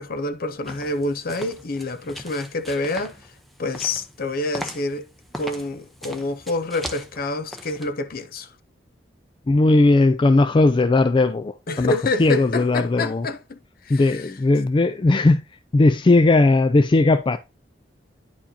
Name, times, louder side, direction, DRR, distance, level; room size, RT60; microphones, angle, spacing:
voice 1, 0.0-3.2 3.6-5.1 5.4-8.5 11.7-13.6 13.9-14.2, left 2 dB, 55° left, 0.7 m, -27 dB
sound 1, 0.6-7.9, equal, ahead, 0.8 m, -39 dB
voice 2, 9.5-13.3 13.9-15.4 15.7-17.4, left 2 dB, 25° left, 0.3 m, -18 dB
10.0 x 4.7 x 2.8 m
head